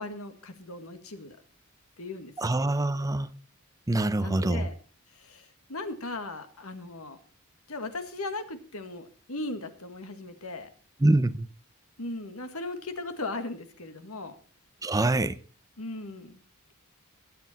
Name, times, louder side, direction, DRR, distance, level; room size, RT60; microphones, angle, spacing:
voice 1, 0.0-1.4 2.0-2.6 4.2-4.8 5.2-7.2 7.7-10.7 12.0-14.4 15.8-16.4, left 2 dB, 70° left, 1.7 m, -38 dB
voice 2, 2.4-3.3 3.9-4.7 11.0-11.5 14.8-15.4, right 2 dB, 15° right, 0.6 m, -25 dB
21.5 x 7.7 x 4.2 m
head